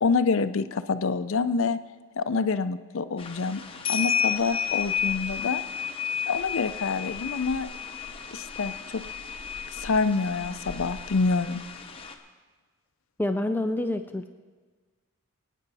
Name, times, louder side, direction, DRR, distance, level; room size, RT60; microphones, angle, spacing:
voice 1, 0.0-1.8 2.2-3.6 3.9-5.6 6.3-7.7 8.3-9.0 9.7-11.6, left 4 dB, 60° left, 11 dB, 0.5 m, -26 dB
sound 1, 3.2-12.1, left 8 dB, 25° left, 0.8 m, -32 dB
voice 2, 13.2-14.3, left 1 dB, 10° left, 7 dB, 0.3 m, -27 dB
22.0 x 9.2 x 4.1 m, 1.4 s
head